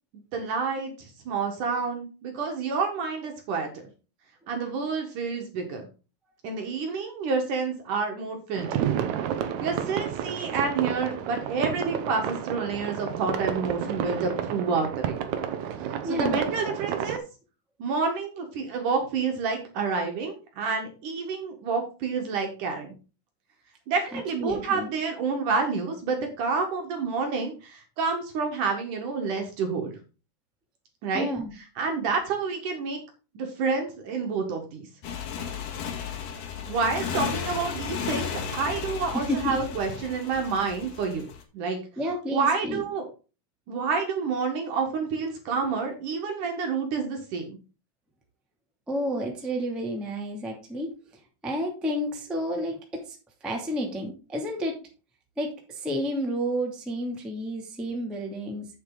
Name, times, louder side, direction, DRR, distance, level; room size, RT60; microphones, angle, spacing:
voice 1, 0.3-3.7 4.5-5.9 6.4-8.8 9.6-15.2 16.0-17.2 17.8-22.9 23.9-30.0 31.0-31.3 31.8-33.0 33.3-34.9 36.7-41.3 41.5-41.8 42.3-43.1 43.7-47.6, right 4 dB, 60° right, 3 dB, 2.7 m, -29 dB
sound 1, 8.6-17.2, right 9 dB, 85° right, 1.6 m, -30 dB
voice 2, 16.0-16.4 24.1-24.9 31.1-31.5 39.1-39.6 41.9-42.8 48.9-50.9 51.4-53.1 53.4-54.7 55.4-58.7, equal, ahead, 0 dB, 1.2 m, -30 dB
Motorcycle, 35.0-41.4, left 7 dB, 60° left, 2.8 m, -34 dB
8.9 x 7.7 x 3.9 m, 0.33 s
omnidirectional pair, 4.8 m